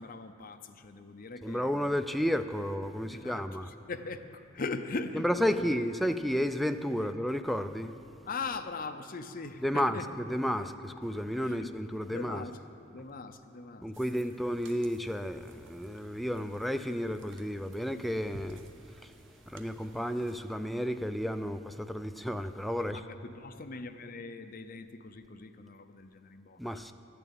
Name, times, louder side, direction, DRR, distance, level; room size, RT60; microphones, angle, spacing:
voice 1, 0.0-2.0 3.1-5.7 6.0-6.2 7.0-7.1 8.2-10.1 10.4-10.7 11.4-12.6 12.9-14.2 22.8-26.6, left 3 dB, 45° left, 8 dB, 0.6 m, -41 dB
voice 2, 1.4-3.7 5.2-8.0 9.6-12.4 13.8-18.6 18.9-19.1 19.5-23.0 26.6-26.9, equal, ahead, 8 dB, 0.4 m, -32 dB
sound 1, 13.9-20.4, right 3 dB, 70° right, 0.8 m, -57 dB
12.0 x 6.9 x 8.7 m, 2.6 s
head